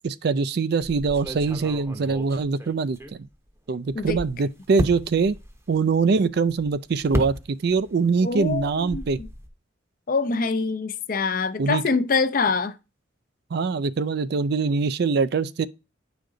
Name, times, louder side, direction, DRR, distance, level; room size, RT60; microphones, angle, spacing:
voice 1, 0.0-3.3 3.7-5.4 5.7-9.2 11.6-11.8 13.5-15.7, right 4 dB, 60° right, 0.4 m, -23 dB
sound 1, 0.8-3.5 3.9-7.9 8.2-9.5, equal, 15° right, 0.8 m, -34 dB
voice 2, 8.2-9.3 10.1-12.8, left 4 dB, 50° left, 0.6 m, -25 dB
9.1 x 5.1 x 3.8 m
head